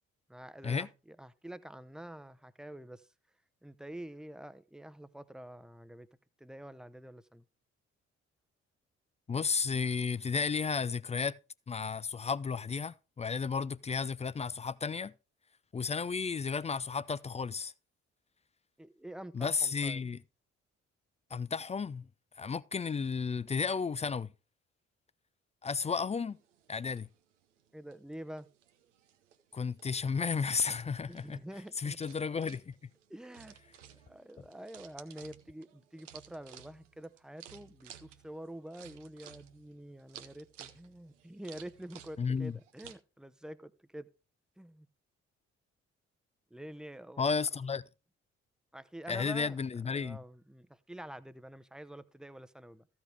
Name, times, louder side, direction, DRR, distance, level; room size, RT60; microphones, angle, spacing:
voice 1, 0.3-3.1 3.6-6.1 6.4-7.4 18.8-20.0 27.7-28.5 31.1-32.0 33.1-33.5 34.1-44.1 44.6-44.9 46.5-47.5 48.7-49.6 49.9-52.9, right 1 dB, ahead, 0.8 m, -47 dB
voice 2, 9.3-11.4 11.7-15.1 15.7-17.7 19.3-20.2 21.3-22.1 22.4-24.3 25.6-26.4 26.7-27.1 29.5-31.4 31.8-32.7 42.2-42.5 47.2-47.8 49.1-50.2, left 5 dB, 20° left, 0.4 m, -33 dB
sound 1, 26.3-42.9, right 10 dB, 85° right, 0.8 m, -56 dB
14.5 x 5.1 x 4.9 m
figure-of-eight pair, 45°, 36 cm